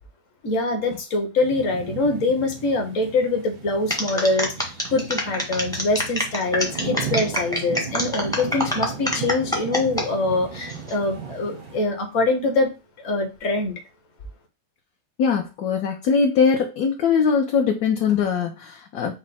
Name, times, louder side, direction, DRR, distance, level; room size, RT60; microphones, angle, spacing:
voice 1, 0.4-12.7 13.0-13.7, left 2 dB, 55° left, 3 dB, 1.2 m, -24 dB
sound 1, 1.4-11.8, right 5 dB, 85° right, 1.5 m, -36 dB
sound 2, 3.9-10.1 10.5-11.0, equal, 5° left, 0.6 m, -26 dB
voice 2, 15.2-19.1, left 6 dB, 70° left, 3 dB, 1.0 m, -21 dB
5.2 x 2.1 x 4.1 m, 0.29 s
omnidirectional pair, 1.8 m